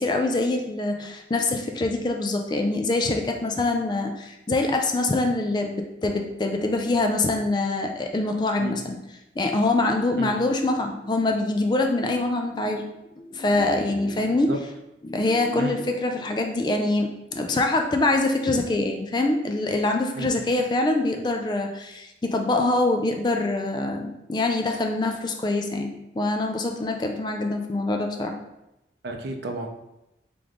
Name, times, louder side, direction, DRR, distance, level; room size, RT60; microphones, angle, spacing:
voice 1, 0.0-9.0 9.4-12.9 13.2-14.5 15.0-28.4, left 2 dB, 25° left, 4 dB, 0.3 m, -24 dB
voice 2, 29.0-29.7, right 2 dB, 70° right, 4 dB, 0.5 m, -31 dB
3.5 x 3.0 x 3.7 m, 0.90 s
head